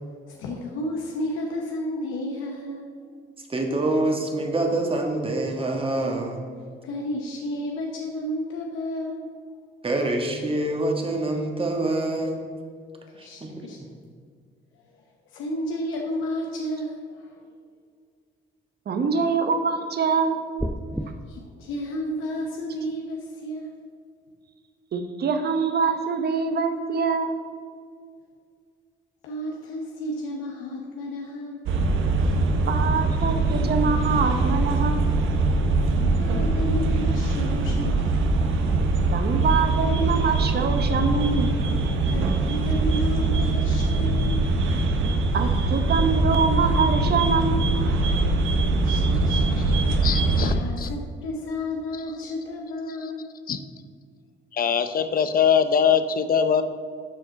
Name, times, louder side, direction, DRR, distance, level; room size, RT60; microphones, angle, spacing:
voice 1, 0.3-2.9 6.8-9.3 13.0-13.8 14.9-17.4 21.0-23.7 29.2-31.6 35.9-39.2 41.7-44.5 48.8-49.5 50.4-53.3, left 1 dB, 85° left, 0 dB, 0.9 m, -32 dB
voice 2, 3.5-6.4 9.8-12.4 13.2-13.5, right 2 dB, 25° right, 2 dB, 1.6 m, -25 dB
voice 3, 18.9-20.4 24.9-27.4 32.7-35.1 39.1-41.5 45.3-47.8, right 5 dB, 55° right, 7 dB, 1.0 m, -24 dB
sound 1, 20.6-21.1, equal, ahead, 0.4 m, -29 dB
sound 2, 31.7-50.5, right 3 dB, 80° right, 0.9 m, -22 dB
voice 4, 50.0-50.9 53.5-53.6 54.5-56.6, left 7 dB, 45° left, 10 dB, 0.7 m, -22 dB
12.0 x 5.0 x 4.0 m, 2.1 s
cardioid pair, 90°, 20 cm